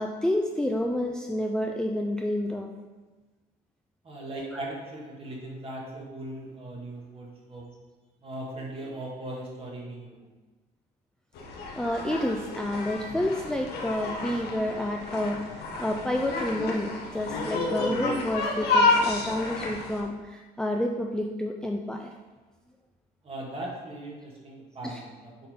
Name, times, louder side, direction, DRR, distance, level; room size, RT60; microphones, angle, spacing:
voice 1, 0.0-2.7 4.5-4.6 11.8-22.1 24.8-25.0, left 1 dB, 5° left, 1 dB, 0.4 m, -29 dB
voice 2, 4.0-7.6 8.2-10.4 23.2-25.5, right 1 dB, 35° right, -2 dB, 1.9 m, -39 dB
sound 1, 11.4-20.0, left 3 dB, 70° left, 1.2 m, -30 dB
6.9 x 3.8 x 5.1 m, 1.3 s
cardioid pair, 110°, 17 cm